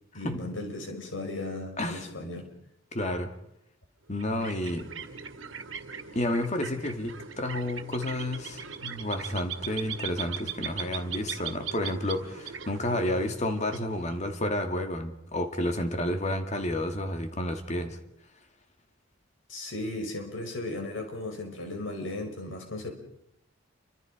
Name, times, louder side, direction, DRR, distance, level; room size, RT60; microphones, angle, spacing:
voice 1, 0.1-2.5 19.5-22.9, left 2 dB, 80° left, 3 dB, 5.8 m, -36 dB
voice 2, 1.8-2.1 2.9-3.3 4.1-4.9 6.1-18.0, left 1 dB, 35° left, 6 dB, 2.3 m, -31 dB
sound 1, 4.1-14.5, right 7 dB, 85° right, 2.0 m, -40 dB
29.0 x 25.5 x 5.1 m, 0.77 s
head